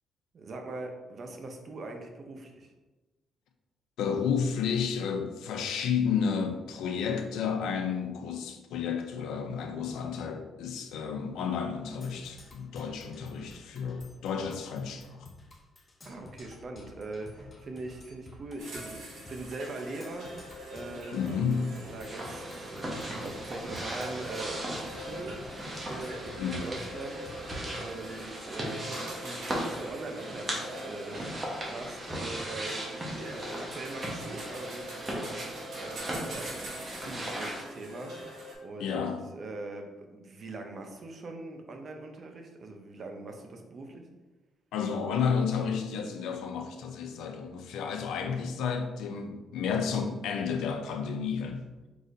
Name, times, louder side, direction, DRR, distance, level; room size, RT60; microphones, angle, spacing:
voice 1, 0.3-2.7 16.0-20.5 20.7-25.4 25.9-27.3 27.8-35.4 35.8-38.3 38.6-39.1 39.3-44.1, right 2 dB, 40° right, 4 dB, 0.7 m, -42 dB
voice 2, 4.0-15.3 21.1-21.7 26.4-26.7 38.8-39.2 44.7-51.6, left 6 dB, 90° left, 5 dB, 0.6 m, -31 dB
Percussion, 12.0-28.0, left 2 dB, 25° left, 0.7 m, -52 dB
sound 1, 18.6-38.5, right 1 dB, 80° right, 1.5 m, -44 dB
sound 2, 22.0-37.6, right 1 dB, 20° right, 1.1 m, -38 dB
4.8 x 4.1 x 2.6 m, 1.1 s
cardioid pair, 145°, 0 cm